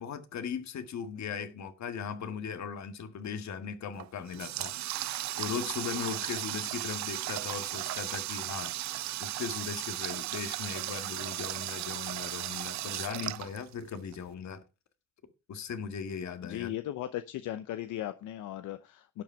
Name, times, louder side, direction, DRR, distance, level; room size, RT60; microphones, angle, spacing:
voice 1, 0.0-4.7 5.4-8.7 9.2-14.6 15.5-16.7, left 7 dB, 65° left, 1.7 m, -38 dB
Water tap faucet, 3.9-14.1, right 14 dB, 65° right, 0.5 m, -36 dB
voice 2, 16.4-19.2, left 13 dB, 85° left, 0.7 m, -37 dB
11.5 x 7.7 x 4.6 m
cardioid pair, 90°, 30 cm